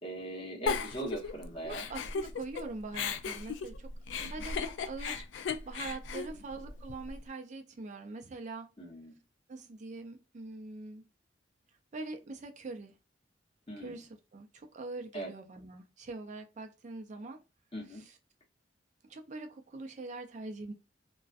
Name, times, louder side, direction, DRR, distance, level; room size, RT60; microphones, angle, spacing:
voice 1, 0.0-1.9 4.2-4.5 6.3-6.4 8.8-9.2 13.7-14.0 15.1-15.3 17.7-18.1, right 1 dB, 30° left, 1.0 m, -40 dB
Giggle, 0.7-2.6 2.9-7.2, left 5 dB, 70° left, 0.3 m, -36 dB
voice 2, 1.6-3.9 4.2-5.2 5.7-8.7 9.5-11.1 11.9-12.9 13.8-17.4 19.0-20.7, right 3 dB, 40° right, 0.4 m, -43 dB
2.3 x 2.1 x 2.4 m
head